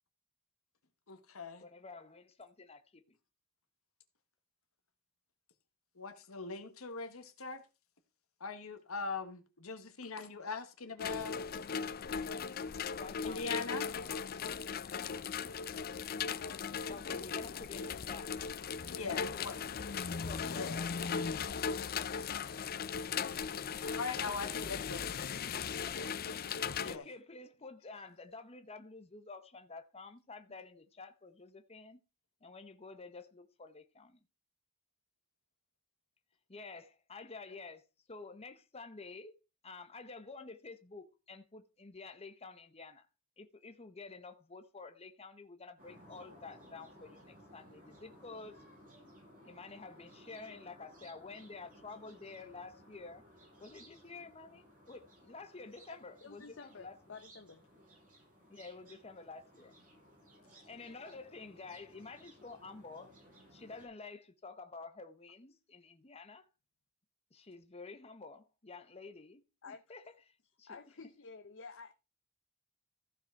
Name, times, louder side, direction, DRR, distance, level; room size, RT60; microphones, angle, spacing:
voice 1, 1.1-1.6 6.0-7.6 8.4-11.4 13.2-13.9 18.9-19.5 20.5-20.8 24.0-25.0 26.8-27.0, left 4 dB, 85° left, 1.5 m, -41 dB
voice 2, 1.6-3.0 13.0-13.6 16.9-18.3 18.9-21.3 24.4-25.0 25.8-26.2 26.8-32.0 32.4-34.2 36.5-37.8 38.1-39.3 39.6-43.1 43.4-48.6 49.4-53.2 53.6-57.0 58.5-59.7 60.7-63.1 63.5-66.5 67.3-70.8, left 3 dB, 30° left, 1.0 m, -50 dB
sound 1, 11.0-27.0, left 6 dB, 45° left, 0.5 m, -38 dB
sound 2, 45.8-63.9, equal, 40° right, 6.4 m, -59 dB
voice 3, 56.2-57.7 69.6-69.8 70.7-71.9, left 4 dB, 60° left, 0.9 m, -51 dB
14.5 x 5.3 x 4.6 m
head